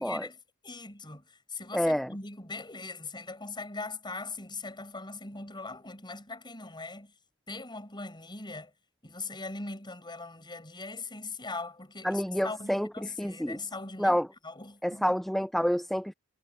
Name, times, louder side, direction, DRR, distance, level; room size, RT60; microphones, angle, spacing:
voice 1, 0.0-7.1 7.5-8.7 9.0-15.0, left 3 dB, 20° left, 6.8 m, -41 dB
voice 2, 1.7-2.1 12.0-13.6 14.0-14.3 14.8-16.1, equal, ahead, 0.5 m, -28 dB
head